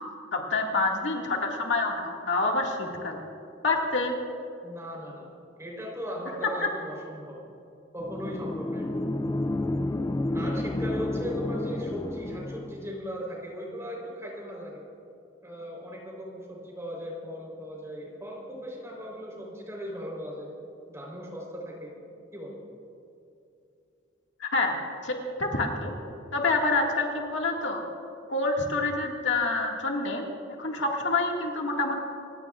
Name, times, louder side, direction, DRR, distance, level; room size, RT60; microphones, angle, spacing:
voice 1, 0.3-3.3 3.6-4.1 24.4-24.8 25.0-25.9 26.3-27.8 28.3-30.2 30.6-31.9, left 3 dB, 75° left, 0 dB, 2.1 m, -27 dB
voice 2, 4.6-5.3 5.6-7.4 7.9-8.9 10.3-14.8 15.4-20.5 20.9-21.9 22.3-22.6, equal, 15° right, -2 dB, 4.0 m, -38 dB
sound 1, 8.0-12.9, left 1 dB, 20° left, 0.4 m, -30 dB
28.5 x 16.5 x 2.5 m, 2.7 s
head